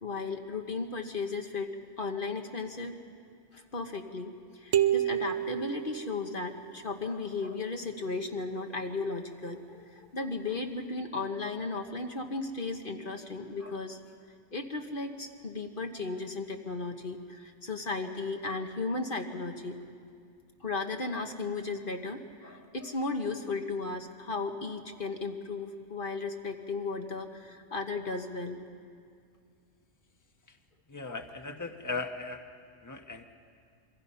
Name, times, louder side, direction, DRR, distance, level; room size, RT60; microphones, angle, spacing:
voice 1, 0.0-3.0 3.5-14.0 14.5-19.8 20.6-28.6, left 3 dB, 45° left, 4 dB, 1.4 m, -35 dB
sound 1, 4.7-6.6, right 11 dB, 75° right, 1.1 m, -29 dB
voice 2, 30.9-32.5 32.8-33.2, left 3 dB, 15° left, 5 dB, 1.2 m, -38 dB
28.0 x 24.5 x 5.6 m, 2.3 s
omnidirectional pair, 1.3 m